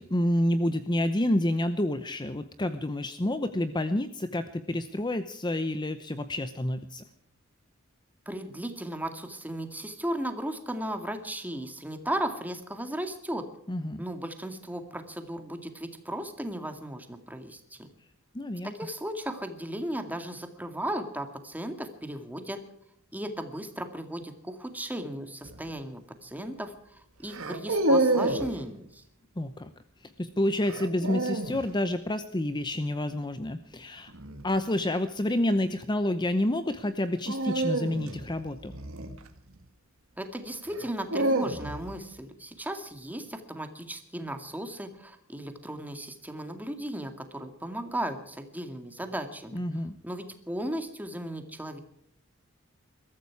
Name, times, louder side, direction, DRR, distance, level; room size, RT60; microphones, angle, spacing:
voice 1, 0.0-7.0 13.7-14.0 18.3-18.7 29.4-29.7 30.0-34.1 34.4-38.7 49.5-49.9, left 1 dB, 20° left, 10 dB, 0.8 m, -29 dB
voice 2, 8.3-13.5 14.0-17.9 18.6-22.6 23.1-29.0 40.2-49.6 50.0-51.8, right 1 dB, 10° right, 7 dB, 2.1 m, -36 dB
sound 1, 25.4-25.8 27.3-28.6 30.6-31.6 34.1-34.5 37.2-39.6 40.7-42.0, right 2 dB, 85° right, 2.0 m, -28 dB
22.0 x 14.0 x 4.7 m, 0.72 s
head